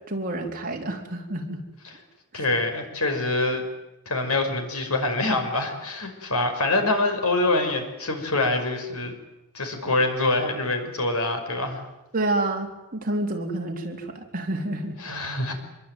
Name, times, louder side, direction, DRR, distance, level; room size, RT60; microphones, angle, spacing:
voice 1, 0.1-1.6 2.3-2.4 12.1-14.9, right 2 dB, 40° right, 2 dB, 4.1 m, -29 dB
voice 2, 2.3-3.7 4.1-9.2 9.5-11.8 15.0-15.5, left 2 dB, 85° left, 5 dB, 5.7 m, -25 dB
26.5 x 22.5 x 9.2 m, 1.0 s
head